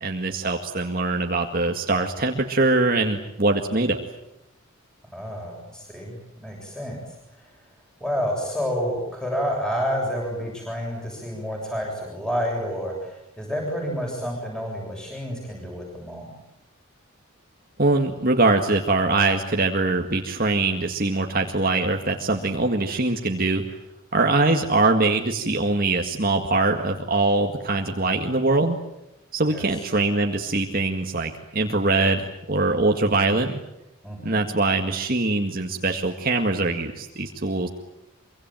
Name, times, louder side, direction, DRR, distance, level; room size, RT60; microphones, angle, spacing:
voice 1, 0.0-4.0 17.8-23.6 24.1-28.8 29.3-33.6 34.2-37.7, right 2 dB, 45° right, 3 dB, 1.9 m, -22 dB
voice 2, 5.1-7.0 7.4-7.5 8.0-16.3 29.5-29.7 34.0-34.5, equal, 5° left, -1 dB, 7.5 m, -29 dB
25.5 x 24.5 x 9.2 m, 0.88 s
head